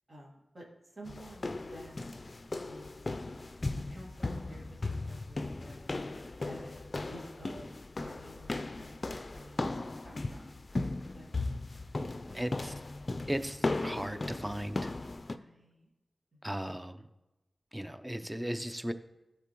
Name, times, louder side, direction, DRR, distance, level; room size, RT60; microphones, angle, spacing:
voice 1, 0.1-0.6 0.9-2.1 2.6-3.4 3.9-5.9 6.3-6.8 7.1-7.7 8.0-10.5 11.0-12.0 12.3-12.6 15.3-15.9 16.3-16.6, equal, 55° right, -3 dB, 2.0 m, -52 dB
sound 1, 1.1-15.4, left 2 dB, 50° left, 0.4 m, -37 dB
voice 2, 12.3-12.7 13.3-14.9 16.4-17.0 17.7-18.9, equal, 10° right, 10 dB, 0.6 m, -36 dB
11.5 x 4.2 x 3.0 m, 0.98 s
cardioid pair, 40°, 0 cm